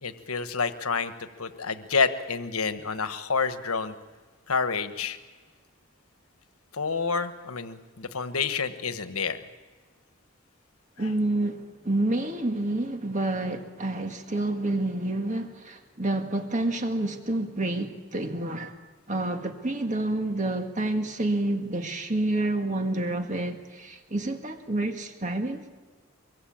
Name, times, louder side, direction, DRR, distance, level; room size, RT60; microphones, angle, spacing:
voice 1, 0.0-3.9 4.5-5.2 6.7-9.4 11.0-11.1, left 5 dB, 85° left, 1.3 m, -29 dB
voice 2, 11.0-18.8 19.1-25.7, right 2 dB, 35° right, 1.8 m, -28 dB
24.0 x 23.5 x 8.8 m
head